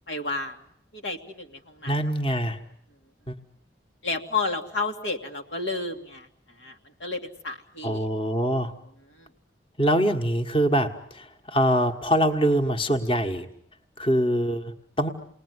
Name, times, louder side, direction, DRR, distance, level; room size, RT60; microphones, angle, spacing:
voice 1, 0.1-0.6 0.9-2.0 4.0-6.3 6.6-8.1 9.1-9.3, left 3 dB, 85° left, 3 dB, 2.5 m, -31 dB
voice 2, 1.9-2.6 3.3-3.4 7.8-8.7 9.8-13.5 14.0-15.1, equal, 30° left, 6 dB, 1.5 m, -24 dB
29.5 x 20.0 x 9.6 m, 0.71 s
head